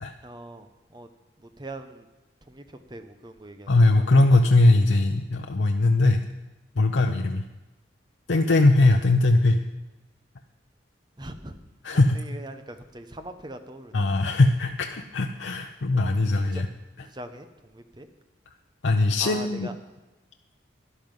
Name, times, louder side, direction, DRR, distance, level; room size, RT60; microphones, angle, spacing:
voice 1, 0.2-1.1 1.6-2.1 2.5-2.6 2.9-3.7 11.2-11.5 12.1-13.9 16.4-16.6 17.0-17.5 17.7-18.1 19.2-19.7, right 1 dB, 25° right, 8 dB, 0.9 m, -41 dB
voice 2, 3.7-6.2 6.8-7.4 8.3-9.6 11.8-12.2 13.9-16.7 17.0-17.1 18.8-19.7, left 2 dB, 80° left, 4 dB, 0.7 m, -20 dB
12.5 x 11.0 x 5.4 m, 1.1 s
head